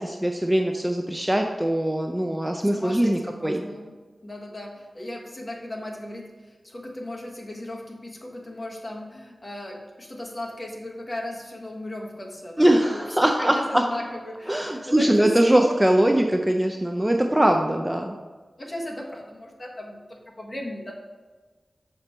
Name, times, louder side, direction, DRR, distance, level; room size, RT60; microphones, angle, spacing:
voice 1, 0.0-3.6 12.6-13.8 14.5-18.1, right 1 dB, 10° right, 3 dB, 0.5 m, -21 dB
voice 2, 2.6-3.9 4.2-15.7 18.6-20.9, left 1 dB, 30° left, -1 dB, 1.3 m, -36 dB
7.1 x 5.2 x 4.2 m, 1.4 s
wide cardioid pair, 90°, 0 cm